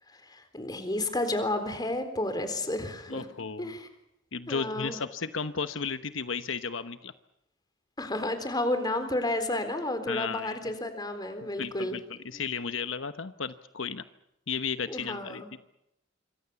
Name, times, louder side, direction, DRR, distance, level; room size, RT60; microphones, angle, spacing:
voice 1, 0.1-3.3 3.6-3.9 4.5-5.0 8.0-12.0 14.9-15.5, left 1 dB, 20° left, 8 dB, 4.0 m, -31 dB
voice 2, 3.1-3.7 4.3-7.1 10.1-10.6 11.6-14.0 14.5-15.4, left 5 dB, 75° left, 11 dB, 1.0 m, -34 dB
26.5 x 25.0 x 7.1 m, 0.83 s
head